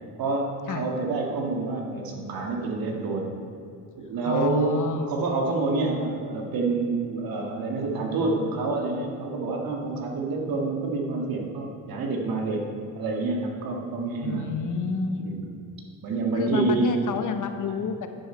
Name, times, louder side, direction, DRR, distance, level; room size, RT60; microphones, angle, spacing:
voice 1, 0.2-3.3 4.0-4.8 5.1-12.7 13.0-14.5 15.2-15.6 16.0-17.0 17.7-17.8, right 3 dB, 75° right, 1 dB, 1.9 m, -28 dB
voice 2, 4.2-5.1 14.2-15.3 16.3-18.1, left 5 dB, 60° left, 7 dB, 1.0 m, -29 dB
10.5 x 10.0 x 4.4 m, 2.4 s
cardioid pair, 110°, 36 cm